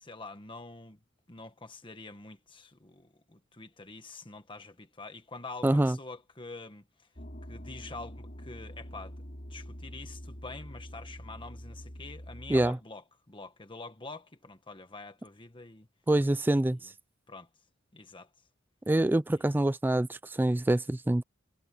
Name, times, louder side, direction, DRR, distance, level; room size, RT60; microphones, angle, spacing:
voice 1, 0.0-1.0 1.3-7.1 7.5-9.1 9.5-15.9 16.7-16.9 17.3-17.5 17.9-18.3 19.3-19.6, left 3 dB, 25° left, 1.5 m, -46 dB
voice 2, 5.6-6.0 12.5-12.8 16.1-16.8 18.9-21.2, right 1 dB, 10° right, 0.3 m, -25 dB
sound 1, 7.2-12.7, equal, 40° left, 7.4 m, -45 dB
head